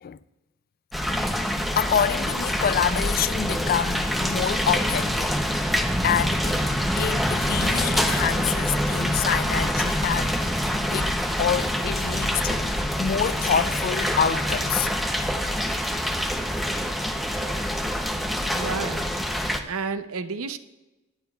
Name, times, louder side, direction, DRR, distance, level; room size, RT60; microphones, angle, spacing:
sound 1, 0.9-19.6, equal, ahead, 0.7 m, -25 dB
voice 1, 1.8-5.4 6.0-6.6 7.0-14.9, left 8 dB, 45° left, 0.3 m, -27 dB
voice 2, 18.5-19.1 19.6-20.6, right 4 dB, 70° right, 0.6 m, -30 dB
25.0 x 8.9 x 2.4 m
head